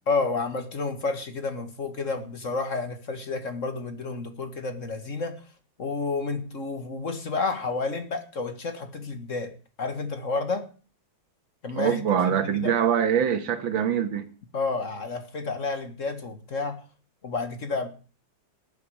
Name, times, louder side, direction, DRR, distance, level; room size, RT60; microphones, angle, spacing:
voice 1, 0.1-5.4 5.8-9.5 9.8-10.7 11.6-12.7 14.5-16.8 17.2-17.9, left 3 dB, 40° left, 1.9 m, -30 dB
voice 2, 11.8-14.2, right 8 dB, 85° right, 2.1 m, -24 dB
19.0 x 9.6 x 5.0 m
omnidirectional pair, 2.1 m